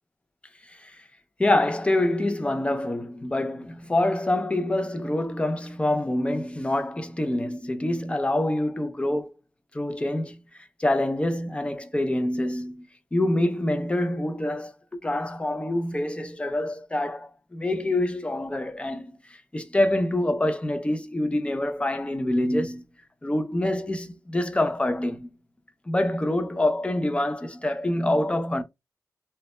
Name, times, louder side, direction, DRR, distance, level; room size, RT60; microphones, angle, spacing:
voice 1, 1.4-9.3 9.7-10.4 10.8-12.9 13.1-19.1 19.5-22.8 23.2-25.3 25.9-28.6, left 1 dB, 15° left, 0.3 m, -26 dB
2.1 x 2.0 x 2.8 m
wide cardioid pair, 125°, 7 cm